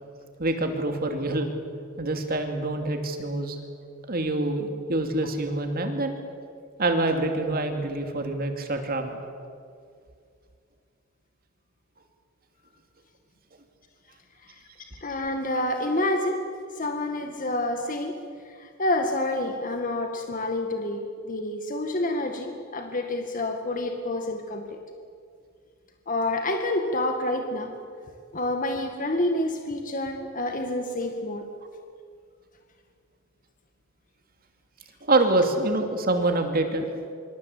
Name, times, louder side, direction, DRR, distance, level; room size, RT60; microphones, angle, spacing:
voice 1, 0.4-1.5 2.0-3.6 4.1-6.2 6.8-9.2 35.1-36.9, right 2 dB, 45° right, 5 dB, 2.7 m, -26 dB
voice 2, 15.0-16.4 16.8-18.2 18.5-24.8 26.1-27.7 28.3-31.4, left 1 dB, 40° left, 4 dB, 2.0 m, -28 dB
26.0 x 24.0 x 8.5 m, 2.2 s
head